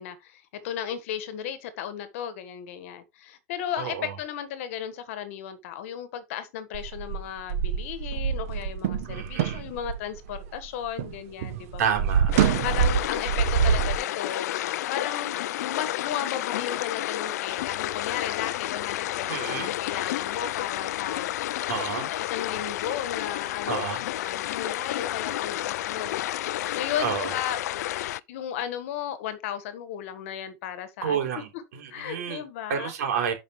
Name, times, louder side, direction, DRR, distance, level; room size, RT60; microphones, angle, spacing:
voice 1, 0.0-11.8 12.6-14.5 14.9-15.4 15.6-21.5 21.9-26.4 26.7-27.6 28.3-31.4 31.9-32.9, left 9 dB, 55° left, 1.7 m, -35 dB
voice 2, 3.8-4.2 9.0-9.6 11.8-12.3 19.3-19.7 21.7-22.1 23.7-24.0 27.0-27.4 31.0-32.4 32.7-33.3, right 7 dB, 85° right, 3.5 m, -29 dB
sound 1, 6.7-11.2 11.4-14.0, right 8 dB, 60° right, 1.0 m, -26 dB
sound 2, 12.3-28.2, left 14 dB, 85° left, 0.4 m, -31 dB
12.0 x 5.3 x 3.2 m
supercardioid pair, 175°, 9 cm